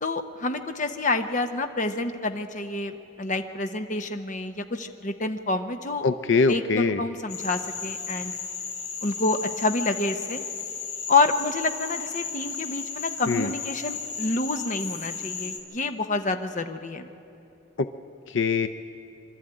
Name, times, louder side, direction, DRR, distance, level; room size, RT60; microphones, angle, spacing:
voice 1, 0.0-6.0 6.5-8.4 9.0-10.4 11.1-17.1, left 3 dB, 40° left, 7 dB, 0.9 m, -28 dB
voice 2, 6.0-7.0 13.3-13.5 17.8-17.9 18.3-18.7, left 4 dB, 75° left, 10 dB, 0.5 m, -23 dB
Frog, 7.3-15.6, left 5 dB, 60° left, 2.4 m, -34 dB
24.5 x 12.5 x 8.9 m, 2.8 s
head